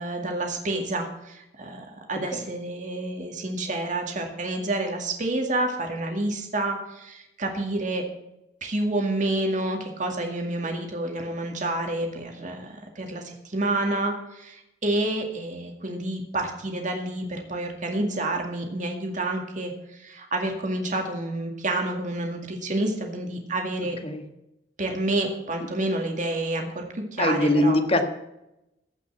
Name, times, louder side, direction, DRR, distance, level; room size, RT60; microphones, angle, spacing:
voice 1, 0.0-8.0 8.6-12.7 13.0-19.7 20.0-24.0 24.8-27.8, right 2 dB, 45° right, 3 dB, 2.1 m, -29 dB
voice 2, 27.2-28.1, left 1 dB, 30° left, 6 dB, 1.5 m, -22 dB
15.0 x 5.9 x 7.3 m, 0.88 s
head